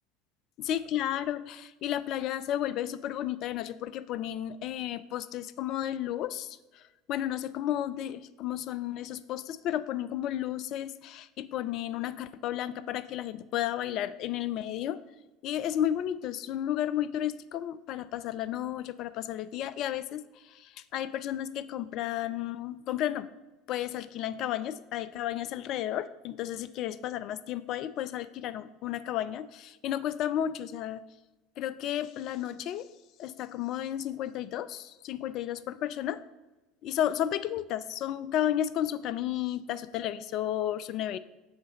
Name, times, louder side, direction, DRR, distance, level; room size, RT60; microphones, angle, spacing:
voice 1, 0.6-6.8 7.1-15.0 15.4-23.3 23.7-31.0 31.6-32.9 33.2-36.2 36.8-41.2, left 11 dB, 50° left, 15 dB, 0.3 m, -33 dB
7.9 x 3.2 x 5.2 m, 1.1 s
figure-of-eight pair, 70°, 0 cm